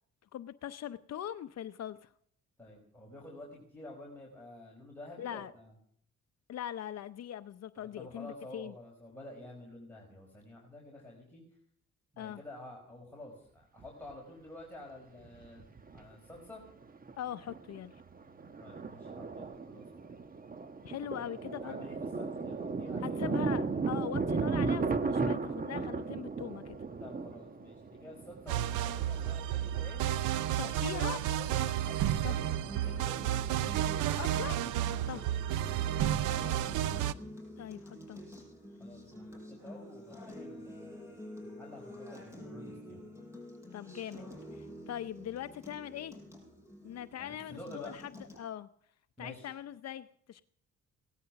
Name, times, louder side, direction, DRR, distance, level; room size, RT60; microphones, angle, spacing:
voice 1, 0.3-2.1 5.2-5.5 6.5-8.7 12.2-12.4 17.2-17.9 20.8-21.8 23.0-26.8 30.6-31.2 32.2-32.4 34.2-35.3 37.6-38.2 43.7-46.2 46.8-48.1 48.4-48.7 49.2-50.4, left 10 dB, 60° left, 12 dB, 0.7 m, -41 dB
voice 2, 2.6-5.7 7.9-11.4 12.1-16.6 18.6-20.0 21.2-21.3 21.6-23.4 27.0-30.0 30.6-33.7 35.5-36.7 38.8-43.0 47.2-47.9 49.2-49.5, left 1 dB, 5° left, -3 dB, 5.0 m, -50 dB
Thunder, 13.8-13.9 15.2-16.1 16.3-16.4 16.8-17.1 17.5-29.9, right 4 dB, 30° right, 1.1 m, -35 dB
sound 1, 28.5-37.1, right 11 dB, 90° right, 0.7 m, -31 dB
Acoustic guitar, 32.4-48.4, left 1 dB, 10° right, 5.4 m, -48 dB
17.5 x 13.0 x 5.9 m, 0.66 s
cardioid pair, 90°, 30 cm